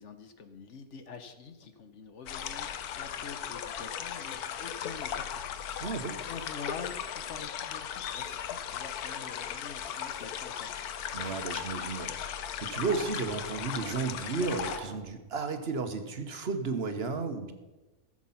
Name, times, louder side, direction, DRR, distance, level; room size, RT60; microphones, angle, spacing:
voice 1, 0.0-5.5 5.8-10.9, left 5 dB, 55° left, 9 dB, 1.1 m, -46 dB
sound 1, 2.1-2.9 3.3-3.4 3.7-4.7 5.7-6.6 6.9-7.0 7.5-8.4 8.8-8.9 9.8-10.4 11.0-11.7 12.6-13.5 14.4-14.9 15.3-15.4, right 1 dB, 10° left, 4.4 m, -49 dB
sound 2, 2.3-14.8, left 9 dB, 85° left, 1.3 m, -37 dB
voice 2, 5.8-6.2 11.1-12.1 12.6-17.5, right 4 dB, 45° right, 8 dB, 1.2 m, -33 dB
14.5 x 7.5 x 5.7 m, 1.1 s
omnidirectional pair, 1.6 m